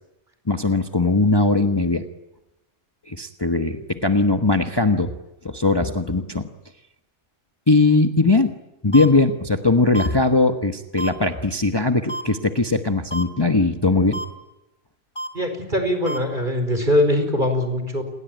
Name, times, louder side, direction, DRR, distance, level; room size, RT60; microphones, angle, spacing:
voice 1, 0.5-2.0 3.1-5.1 5.4-6.4 7.7-8.5 8.8-14.2, left 3 dB, 20° left, 6 dB, 1.2 m, -19 dB
sound 1, 8.9-9.1 9.9-10.1 11.0-11.1 12.1-12.2 13.1-13.2 14.1-14.2 15.1-15.3 16.1-16.2, right 1 dB, 45° left, 3.5 m, -29 dB
voice 2, 15.3-18.0, left 1 dB, 40° right, 7 dB, 5.2 m, -22 dB
29.0 x 21.5 x 9.2 m, 0.96 s
omnidirectional pair, 1.2 m